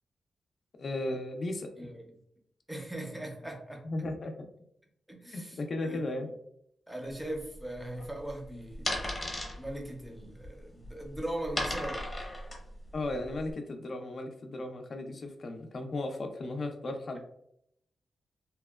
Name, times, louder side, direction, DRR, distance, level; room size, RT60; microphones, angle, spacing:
voice 1, 0.8-1.7 3.8-4.5 5.3-6.3 12.9-17.2, left 2 dB, 50° left, 5 dB, 0.4 m, -35 dB
voice 2, 2.7-3.8 5.1-6.3 6.9-9.2 9.6-12.0, right 1 dB, 5° right, 0 dB, 0.5 m, -40 dB
sound 1, 7.1-13.5, left 1 dB, 25° left, 0.8 m, -37 dB
2.8 x 2.1 x 2.2 m, 0.74 s
wide cardioid pair, 125°, 0 cm